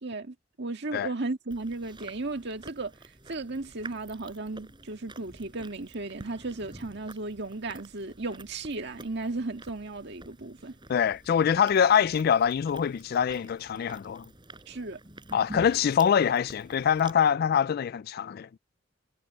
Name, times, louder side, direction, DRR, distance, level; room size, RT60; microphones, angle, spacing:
voice 1, 0.0-2.9 3.3-10.8 14.7-15.0, right 2 dB, 60° right, 1.8 m, -35 dB
Chewing mastication, 1.5-17.1, right 2 dB, 25° right, 6.7 m, -49 dB
voice 2, 10.9-14.3 15.3-18.5, left 8 dB, 50° left, 0.3 m, -24 dB
head